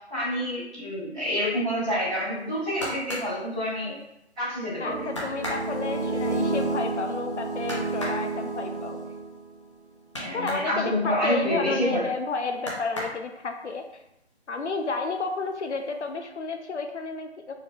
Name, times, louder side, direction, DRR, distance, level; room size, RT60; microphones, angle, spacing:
voice 1, 0.1-3.9 4.3-5.1 10.2-12.0, equal, 5° right, -19 dB, 1.2 m, -28 dB
sound 1, 2.4-4.3 4.7-4.8 5.1-10.7 11.0-12.2 12.5-13.6 14.1-14.7 15.0-15.7 16.0-16.1, equal, 25° left, 0.7 m, -37 dB
voice 2, 4.8-9.0 10.3-13.9 14.5-17.5, left 4 dB, 85° left, 5 dB, 0.7 m, -31 dB
sound 2, 4.9-9.5, right 2 dB, 55° right, 0.8 m, -30 dB
4.2 x 3.5 x 2.5 m, 0.84 s
figure-of-eight pair, 175°, 34 cm